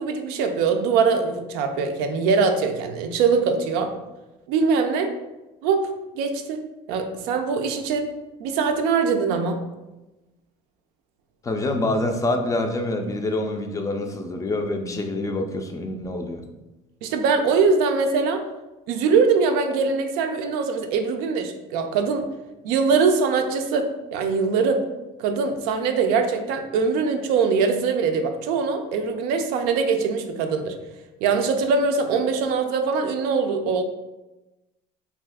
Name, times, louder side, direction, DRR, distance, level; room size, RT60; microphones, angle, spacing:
voice 1, 0.0-3.9 4.5-5.1 5.6-6.6 6.9-8.1 8.4-9.6 17.0-18.4 18.9-22.3 22.6-24.9 25.2-30.8 31.2-33.8, right 5 dB, 75° right, 6 dB, 0.4 m, -22 dB
voice 2, 11.4-16.4, left 2 dB, 20° left, 4 dB, 0.3 m, -26 dB
2.6 x 2.4 x 3.4 m, 1.0 s
supercardioid pair, 100°, 16 cm